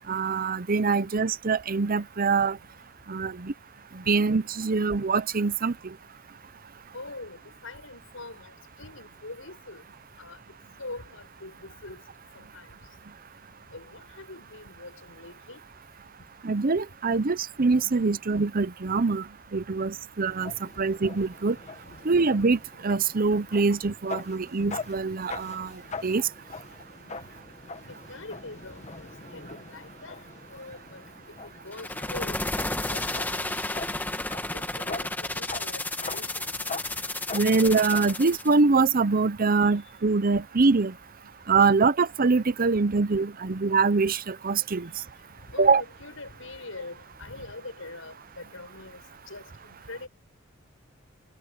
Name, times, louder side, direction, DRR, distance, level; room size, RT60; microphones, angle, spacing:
voice 1, 0.1-2.6 3.1-3.5 3.9-5.9 16.4-19.3 19.5-21.6 22.0-25.7 26.0-26.3 37.3-40.9 41.5-44.9 45.6-45.8, right 4 dB, 45° right, 0.7 m, -24 dB
voice 2, 6.9-8.5 8.8-9.8 10.2-10.4 10.8-12.0 12.3-12.7 13.7-15.6 27.9-30.2 30.5-31.0 31.4-32.4 32.9-33.9 34.5-36.6 45.5-49.0 49.3-50.1, left 2 dB, 90° left, 6.6 m, -43 dB
sound 1, 20.3-38.2, left 3 dB, 35° left, 1.6 m, -43 dB
sound 2, 31.7-38.5, left 2 dB, 10° left, 1.5 m, -32 dB
head